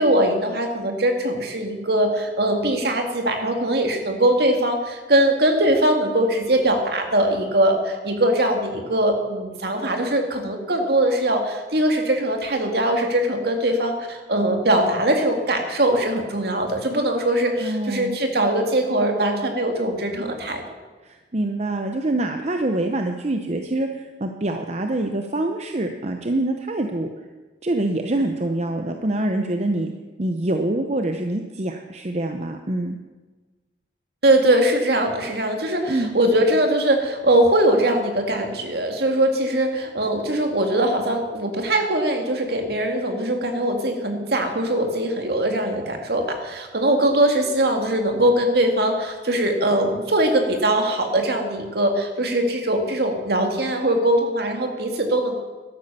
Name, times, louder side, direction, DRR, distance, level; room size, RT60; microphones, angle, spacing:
voice 1, 0.0-20.6 34.2-55.3, right 1 dB, 60° right, 4 dB, 2.1 m, -21 dB
voice 2, 17.6-18.2 21.0-27.1 27.6-29.9 30.2-33.0 35.9-36.1, right 1 dB, 40° right, 5 dB, 0.8 m, -25 dB
12.5 x 10.5 x 7.0 m, 1.3 s
head